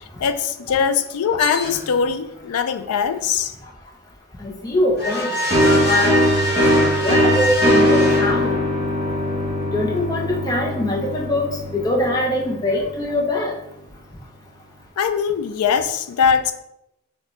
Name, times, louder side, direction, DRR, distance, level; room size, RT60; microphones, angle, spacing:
voice 1, 0.2-3.5 15.0-16.5, left 6 dB, 85° left, 10 dB, 0.4 m, -21 dB
sound 1, 1.4-2.1 5.0-8.9, left 1 dB, 45° left, 1.0 m, -25 dB
voice 2, 4.4-5.3 5.8-6.2 7.0-8.6 9.7-13.5, left 1 dB, 15° left, -3 dB, 0.6 m, -22 dB
sound 2, 5.5-13.0, equal, 20° right, 0.9 m, -20 dB
6.4 x 2.2 x 3.0 m, 0.84 s
head